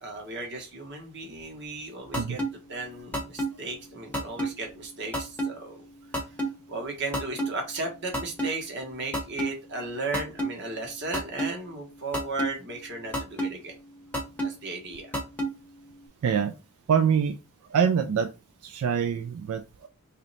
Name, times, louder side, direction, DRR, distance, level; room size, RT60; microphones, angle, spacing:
voice 1, 0.0-2.4 2.7-5.8 6.7-13.8 14.4-15.1, right 3 dB, 50° right, 2 dB, 1.2 m, -35 dB
sound 1, 2.1-2.5 3.1-3.5 4.1-4.5 5.1-5.5 6.1-6.5 7.1-7.5 8.1-8.5 9.1-9.5 10.1-10.5 11.1-11.5 12.1-12.5 13.1-13.5 14.1-14.5 15.1-15.5, right 1 dB, 5° left, 0.7 m, -27 dB
voice 2, 16.2-16.5 16.9-17.4 17.7-18.3 18.6-19.9, right 7 dB, 75° right, 8 dB, 0.3 m, -25 dB
3.1 x 2.7 x 4.0 m, 0.30 s
head